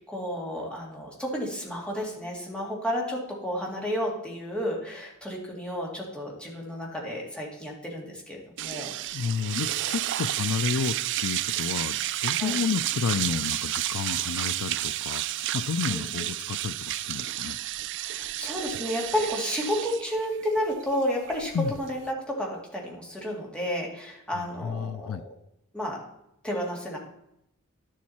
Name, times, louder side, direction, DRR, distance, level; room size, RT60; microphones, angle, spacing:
voice 1, 0.0-8.9 12.4-12.6 15.9-16.0 18.0-21.5 21.8-25.2 25.7-26.0 26.4-27.0, equal, 5° left, -3 dB, 2.4 m, -31 dB
sound 1, 8.6-22.1, right 14 dB, 55° right, 0.3 m, -31 dB
voice 2, 9.1-17.6 21.5-21.7 24.3-25.2, left 6 dB, 70° left, 13 dB, 0.4 m, -31 dB
11.5 x 7.5 x 4.2 m, 0.80 s
head